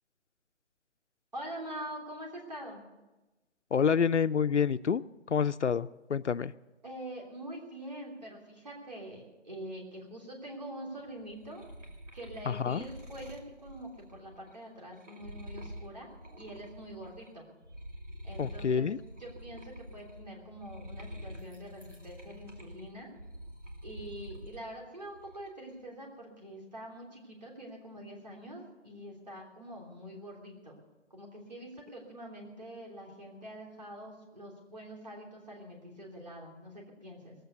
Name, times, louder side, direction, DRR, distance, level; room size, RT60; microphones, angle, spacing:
voice 1, 1.3-2.8 6.8-11.6 12.1-16.1 16.4-17.5 18.2-18.9 19.2-23.1 23.8-30.8 31.1-37.4, right 1 dB, 35° right, -1 dB, 3.2 m, -45 dB
voice 2, 3.7-5.0 5.3-6.5 12.5-12.8 18.4-19.0, left 6 dB, 70° left, 13 dB, 0.5 m, -28 dB
sound 1, 11.1-17.3 17.6-24.6 25.0-25.7, equal, 80° right, 2.8 m, -47 dB
19.0 x 8.0 x 8.1 m, 1.1 s
figure-of-eight pair, 180°, 37 cm